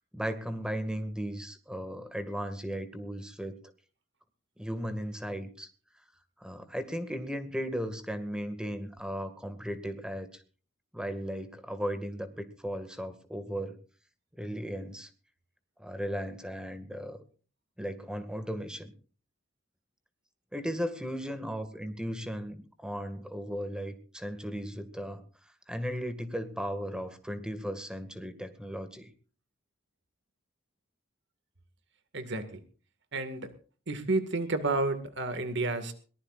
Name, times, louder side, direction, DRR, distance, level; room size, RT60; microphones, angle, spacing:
voice 1, 0.1-3.6 4.6-5.7 6.4-10.4 10.9-13.8 14.4-15.1 15.8-17.2 17.8-18.9 20.5-25.2 25.7-29.1, equal, 5° right, 9 dB, 2.0 m, -36 dB
voice 2, 32.1-32.6 33.1-33.5 33.9-35.9, right 2 dB, 65° right, 10 dB, 2.0 m, -31 dB
22.5 x 19.0 x 2.5 m, 0.39 s
head